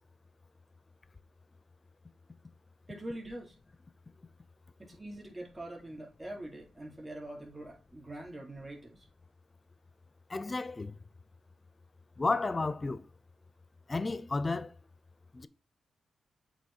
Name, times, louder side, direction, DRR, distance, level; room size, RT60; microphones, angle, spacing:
voice 1, 2.9-3.5 4.8-9.1, right 1 dB, 20° right, 3.8 m, -44 dB
voice 2, 10.3-10.9 12.2-13.0 13.9-14.7 15.3-15.5, left 3 dB, 30° left, 0.5 m, -32 dB
8.3 x 3.1 x 4.3 m
cardioid pair, 85°, 0 cm